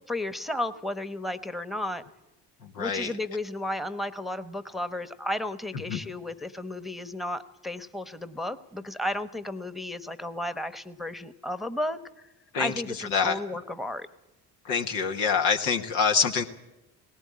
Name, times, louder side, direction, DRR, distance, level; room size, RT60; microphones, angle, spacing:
voice 1, 0.1-2.0 2.8-12.3 12.6-14.1, left 1 dB, ahead, 13 dB, 1.0 m, -33 dB
voice 2, 2.6-3.1 5.9-6.0 12.5-13.4 14.6-16.4, left 6 dB, 80° left, 4 dB, 1.5 m, -26 dB
18.5 x 17.5 x 8.6 m, 0.97 s
hypercardioid pair, 55°, 48 cm